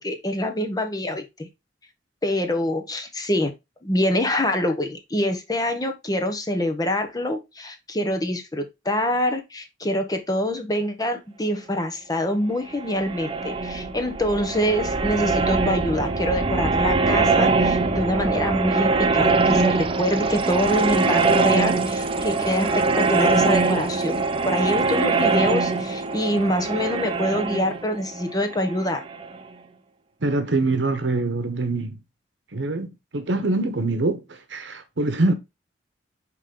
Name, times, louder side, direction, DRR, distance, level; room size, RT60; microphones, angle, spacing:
voice 1, 0.0-1.5 2.2-3.5 3.8-22.7 23.0-29.0, left 1 dB, 20° left, 1.1 m, -25 dB
sound 1, 12.7-29.4, right 3 dB, 30° right, 0.7 m, -22 dB
voice 2, 30.2-32.0 32.5-35.3, right 2 dB, 80° right, 1.0 m, -24 dB
8.8 x 3.2 x 3.7 m
head